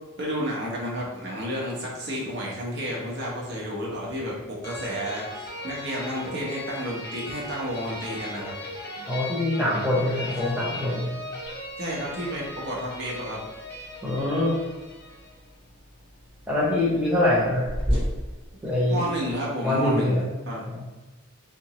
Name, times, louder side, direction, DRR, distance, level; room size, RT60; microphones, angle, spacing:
voice 1, 0.2-8.5 11.8-13.4 18.9-20.2 20.5-20.6, equal, 55° right, -3 dB, 0.9 m, -31 dB
sound 1, 4.6-15.4, left 1 dB, 50° left, 0.8 m, -38 dB
voice 2, 9.1-11.1 14.0-14.6 16.5-18.0 18.6-19.0 19.6-20.3 20.6-20.9, left 1 dB, 5° right, -6 dB, 0.6 m, -24 dB
sound 2, 10.2-19.3, equal, 25° right, 1.1 m, -36 dB
3.5 x 2.9 x 2.9 m, 1.2 s
head